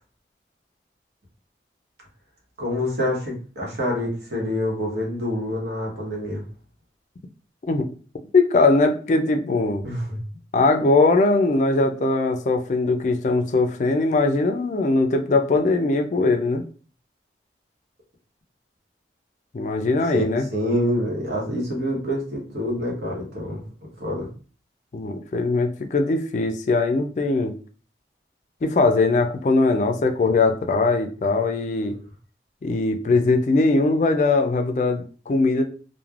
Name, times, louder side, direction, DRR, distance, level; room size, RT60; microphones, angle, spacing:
voice 1, 2.6-6.4 9.8-10.2 20.1-20.2 20.5-23.6 24.0-24.3, equal, 70° right, -2 dB, 1.0 m, -26 dB
voice 2, 8.3-9.8 10.5-16.6 19.5-20.5 24.9-27.5 28.6-32.0 32.6-35.6, left 3 dB, 40° left, 5 dB, 0.3 m, -20 dB
3.1 x 2.1 x 2.4 m, 0.40 s
head